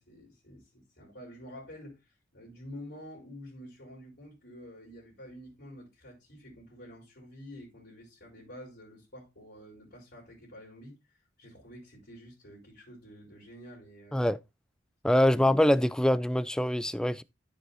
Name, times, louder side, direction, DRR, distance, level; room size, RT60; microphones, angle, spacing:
voice 1, 0.0-14.3 15.2-15.5, equal, 55° left, 4.0 m, -49 dB
voice 2, 15.0-17.2, left 1 dB, 5° left, 0.3 m, -24 dB
14.0 x 5.4 x 2.6 m
head